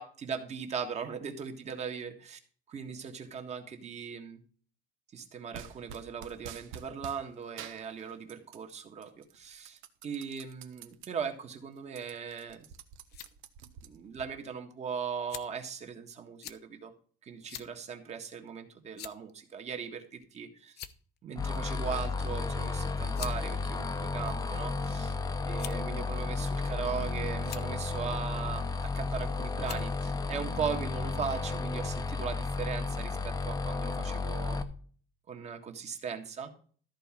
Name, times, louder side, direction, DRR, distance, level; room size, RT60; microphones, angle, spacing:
voice 1, 0.0-2.4 2.7-4.4 5.1-12.7 13.8-16.9 17.2-20.9 21.2-25.1 25.5-34.6 35.3-36.5, right 6 dB, 35° right, 5 dB, 1.6 m, -39 dB
sound 1, 5.5-7.2 7.6-8.7 9.0-11.1 11.5-11.6 11.8-14.3, right 8 dB, 80° right, 1.2 m, -48 dB
sound 2, 12.8-13.3 14.1-14.2 15.3-15.7 16.4-16.6 17.5-17.7 18.1-18.2 18.9-19.3 20.2-20.4 20.7-21.2 22.3-22.4 23.1-23.4 24.2-24.8 25.6-25.9 26.7-27.0 27.4-27.7 28.9-29.2 29.6-29.9, left 11 dB, 55° left, 0.8 m, -44 dB
sound 3, 21.4-34.6, left 3 dB, 20° left, 0.8 m, -33 dB
13.5 x 4.7 x 7.4 m, 0.44 s
cardioid pair, 175°, 20 cm